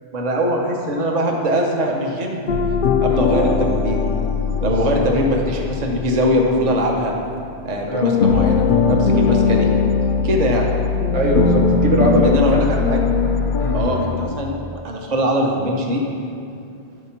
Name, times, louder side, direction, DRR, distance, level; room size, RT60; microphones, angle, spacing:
voice 1, 0.1-2.4 3.0-4.1 4.6-7.1 7.6-8.6 8.9-9.7 10.2-10.7 12.2-12.8 13.7-16.0, equal, 40° right, 0 dB, 0.9 m, -21 dB
sound 1, 2.5-7.7 8.0-14.3, left 5 dB, 55° left, 0.6 m, -20 dB
voice 2, 7.9-8.2 11.1-12.6 13.6-13.8, equal, 85° right, -3 dB, 1.7 m, -21 dB
13.0 x 4.3 x 5.8 m, 2.5 s
omnidirectional pair, 1.2 m